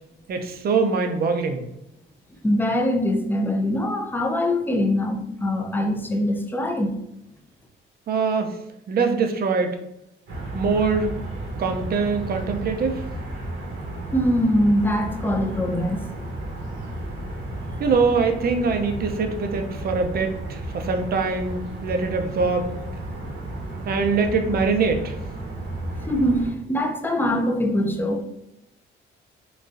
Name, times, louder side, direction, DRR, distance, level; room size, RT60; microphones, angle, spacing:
voice 1, 0.3-1.6 8.1-8.5 8.9-9.8 10.5-11.1 11.6-13.0 17.8-22.7 23.8-25.2, right 4 dB, 50° right, 5 dB, 0.5 m, -23 dB
voice 2, 2.4-6.9 14.1-16.0 26.1-28.2, left 1 dB, 10° left, 4 dB, 0.5 m, -23 dB
sound 1, 10.3-26.5, right 1 dB, 70° right, 1.0 m, -33 dB
3.9 x 2.3 x 2.5 m, 0.83 s
cardioid pair, 90°, 20 cm